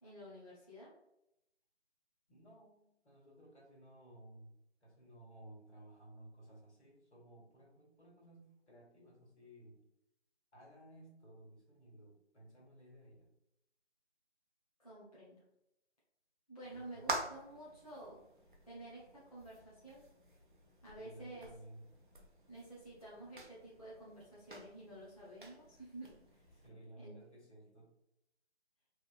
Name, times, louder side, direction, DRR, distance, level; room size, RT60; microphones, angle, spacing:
voice 1, 0.0-0.9 14.8-15.4 16.5-18.2 18.6-20.1 20.8-21.5 22.5-26.4 27.0-27.2, right 1 dB, 35° left, -8 dB, 0.6 m, -51 dB
voice 2, 2.3-9.8 10.5-13.3 16.7-17.2 20.9-21.9 26.5-27.9, right 1 dB, 80° left, -3 dB, 1.4 m, -57 dB
sound 1, 16.6-26.7, right 2 dB, 50° right, 0.4 m, -48 dB
2.8 x 2.1 x 2.4 m, 0.83 s
figure-of-eight pair, 175°, 34 cm